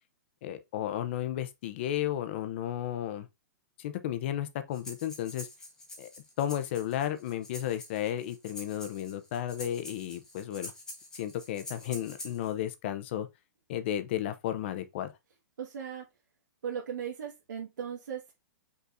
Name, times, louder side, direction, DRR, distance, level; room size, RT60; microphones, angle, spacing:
voice 1, 0.4-3.3 3.8-5.5 6.0-6.1 6.4-10.7 11.1-13.3 13.7-15.1, left 11 dB, 40° left, 0.7 m, -33 dB
Breathing, 4.7-12.5, left 2 dB, 5° left, 1.0 m, -46 dB
voice 2, 15.6-16.0 16.6-18.3, right 8 dB, 85° right, 1.7 m, -37 dB
5.5 x 3.7 x 2.6 m
hypercardioid pair, 165°, 10 cm